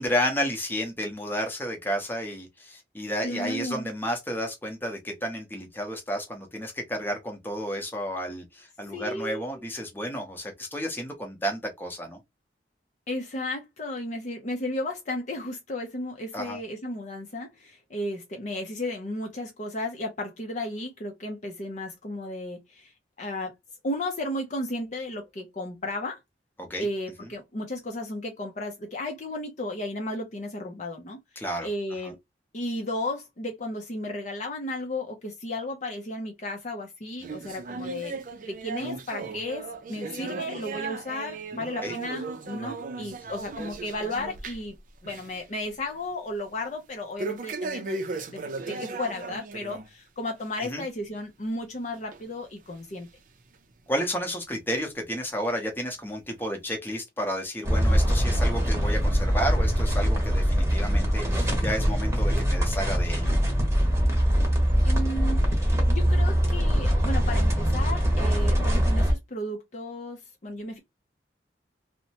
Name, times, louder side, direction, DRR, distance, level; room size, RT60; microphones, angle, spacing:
voice 1, 0.0-12.2 16.3-16.6 26.6-26.9 31.4-31.7 32.0-32.1 41.8-41.9 50.6-50.8 53.9-63.3, equal, 10° left, 0.8 m, -31 dB
voice 2, 3.2-3.9 8.9-9.6 13.1-22.9 23.2-23.5 23.8-26.2 26.8-31.2 31.6-32.2 32.5-44.7 45.0-48.4 48.7-53.1 64.8-70.8, left 1 dB, 40° left, 0.5 m, -34 dB
sound 1, 37.2-44.8 45.0-45.4 45.8-45.9 47.2-49.9 50.3-50.5 51.1-51.2 52.1-52.2 53.0-53.1, right 3 dB, 50° right, 0.4 m, -36 dB
sound 2, 57.6-69.1, equal, 15° right, 1.0 m, -23 dB
2.8 x 2.1 x 2.8 m
head